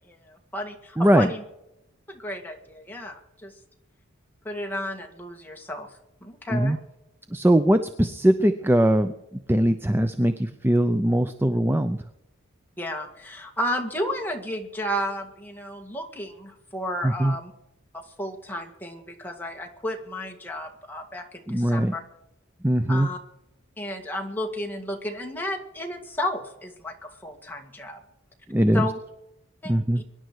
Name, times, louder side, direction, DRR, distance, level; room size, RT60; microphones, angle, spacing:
voice 1, 0.0-1.4 2.1-3.5 4.4-5.9 6.2-6.8 12.8-17.5 17.9-22.0 22.9-23.2 23.8-28.0 28.7-29.0 29.6-30.0, left 1 dB, 10° left, 2 dB, 2.0 m, -33 dB
voice 2, 1.0-1.3 6.5-6.8 7.3-12.0 17.0-17.4 21.5-21.9 22.6-23.1 28.5-28.9 29.6-30.0, right 1 dB, 10° right, 9 dB, 0.5 m, -21 dB
24.0 x 10.5 x 4.8 m, 0.85 s
head